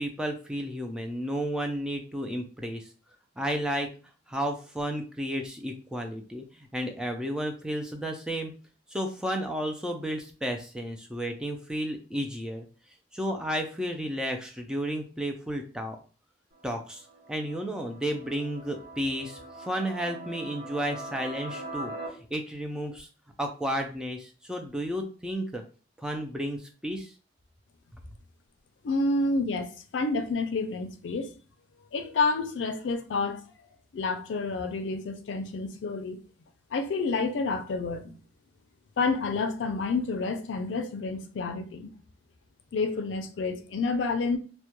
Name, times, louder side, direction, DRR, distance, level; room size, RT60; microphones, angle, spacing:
voice 1, 0.0-2.9 3.4-3.9 4.3-8.5 8.9-12.7 13.1-16.0 16.6-21.9 22.3-23.1 23.4-25.6 26.0-27.1, equal, 5° right, 0.3 m, -32 dB
sound 1, 16.5-22.1, right 2 dB, 60° right, 0.9 m, -42 dB
voice 2, 28.8-31.3 31.9-33.4 33.9-36.2 36.7-38.1 39.0-41.9 42.7-44.4, left 3 dB, 90° left, 0.4 m, -29 dB
2.2 x 2.1 x 2.8 m
head